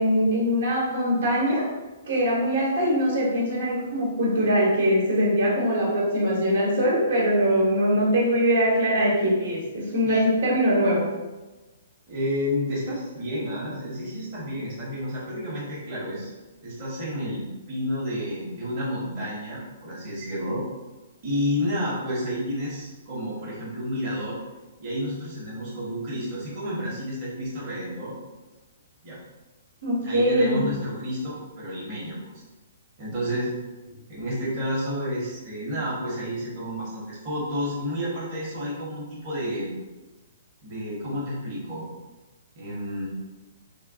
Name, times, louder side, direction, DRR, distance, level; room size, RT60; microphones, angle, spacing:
voice 1, 0.0-1.6 2.1-11.0 29.8-30.6, equal, 60° right, -5 dB, 1.0 m, -22 dB
voice 2, 12.1-16.3 16.6-20.6 21.2-24.4 24.8-28.2 29.0-29.2 30.0-32.4 33.0-33.5 34.1-39.7 40.6-41.9 42.6-43.1, equal, 35° right, -7 dB, 0.9 m, -30 dB
2.9 x 2.2 x 2.7 m, 1.1 s
figure-of-eight pair, 120°, 0 cm